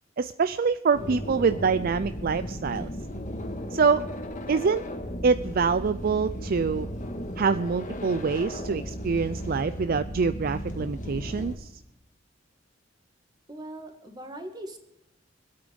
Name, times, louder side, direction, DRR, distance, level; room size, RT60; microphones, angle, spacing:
voice 1, 0.2-2.9 3.7-4.0 4.5-4.8 5.2-6.9 7.4-11.7, right 5 dB, 50° right, 13 dB, 0.4 m, -25 dB
sound 1, 0.9-11.5, equal, 40° left, 1.8 m, -35 dB
voice 2, 13.5-14.8, right 1 dB, 20° right, 4 dB, 2.1 m, -40 dB
24.5 x 8.8 x 5.3 m, 0.86 s
head